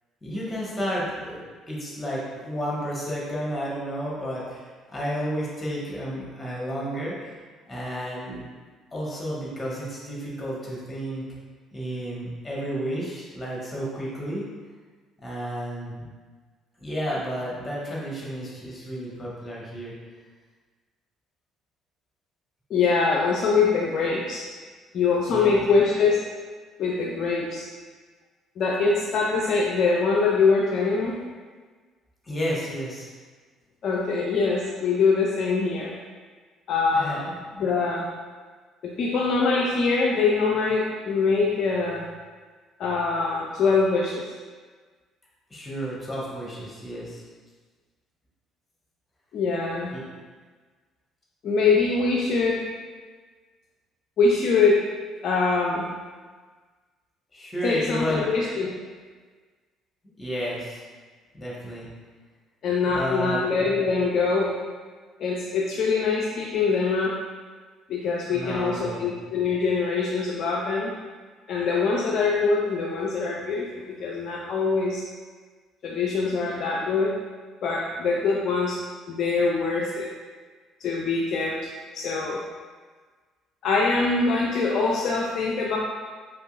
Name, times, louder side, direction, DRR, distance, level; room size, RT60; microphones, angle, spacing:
voice 1, 0.2-1.4 1.7-7.4 7.6-8.4 8.9-11.2 11.7-14.5 15.2-16.0 16.8-19.9 25.3-25.6 32.2-33.1 36.9-37.2 45.5-47.2 49.9-50.0 57.3-58.2 60.2-60.8 61.3-61.9 62.9-63.4 68.3-69.1, equal, 15° left, -5 dB, 1.4 m, -31 dB
voice 2, 22.7-24.4 24.9-26.2 26.8-27.7 28.6-31.2 33.8-35.9 36.7-38.1 38.8-42.0 42.8-44.2 49.3-49.9 51.4-52.6 54.2-54.8 55.2-55.8 57.6-58.7 62.6-64.6 65.2-67.1 67.9-70.9 71.5-75.0 75.8-77.2 77.6-78.8 79.1-80.1 80.8-81.6 81.9-82.4 83.6-85.8, left 4 dB, 50° left, -2 dB, 0.4 m, -23 dB
4.3 x 3.7 x 2.6 m, 1.4 s
figure-of-eight pair, 50°, 0 cm